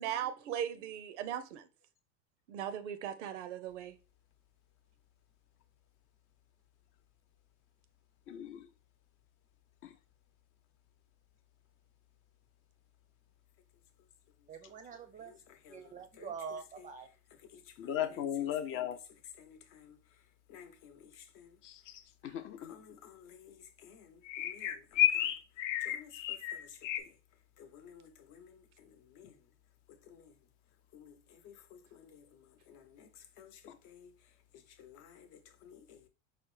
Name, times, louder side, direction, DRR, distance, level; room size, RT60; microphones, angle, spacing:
voice 1, 0.0-1.7 2.5-4.0 22.2-22.3, right 10 dB, 80° right, 0.6 m, -38 dB
voice 2, 8.3-8.7 9.8-9.9 17.8-19.0 22.2-22.7 33.7-33.8, left 10 dB, 35° left, 0.4 m, -36 dB
voice 3, 14.5-15.3 15.7-17.1, right 6 dB, 20° right, 0.5 m, -45 dB
voice 4, 15.6-16.3 17.5-17.9 18.7-18.9 19.4-20.0 20.5-21.6 22.6-25.3 25.8-27.2 27.6-29.3 30.0-30.3 30.9-34.1 34.5-36.1, left 8 dB, 55° left, 0.8 m, -56 dB
sound 1, 21.6-22.0 24.3-27.0, left 11 dB, 85° left, 0.5 m, -31 dB
4.7 x 2.0 x 3.1 m
hypercardioid pair, 100°, 36 cm